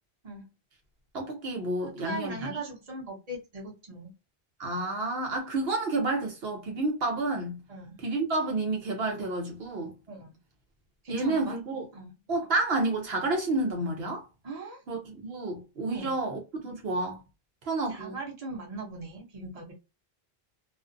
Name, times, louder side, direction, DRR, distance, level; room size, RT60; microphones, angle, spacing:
voice 1, 1.1-2.6 4.6-7.6 8.0-10.0 11.1-11.9 12.3-14.3 14.9-17.2 17.6-18.2, right 2 dB, 70° right, 0.9 m, -30 dB
voice 2, 1.8-4.1 7.7-8.0 10.1-10.4 11.0-11.6 11.9-12.1 14.4-14.8 15.9-16.2 17.9-19.7, right 2 dB, 40° right, 1.0 m, -39 dB
2.5 x 2.4 x 2.5 m
omnidirectional pair, 1.1 m